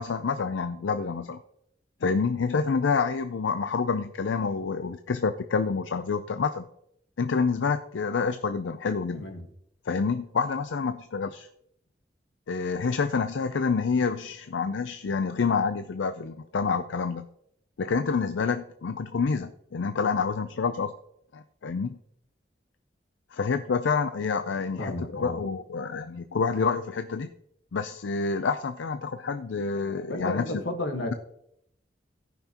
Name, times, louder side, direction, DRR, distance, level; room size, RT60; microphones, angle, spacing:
voice 1, 0.0-1.4 2.0-6.7 7.2-9.3 9.9-11.5 12.5-17.3 17.8-20.9 21.3-22.0 23.3-27.3 27.7-30.6, left 5 dB, 85° left, 10 dB, 0.5 m, -28 dB
voice 2, 9.1-9.5 24.8-25.4 30.1-31.1, left 1 dB, 70° left, 4 dB, 1.4 m, -32 dB
17.5 x 5.9 x 2.9 m, 0.74 s
head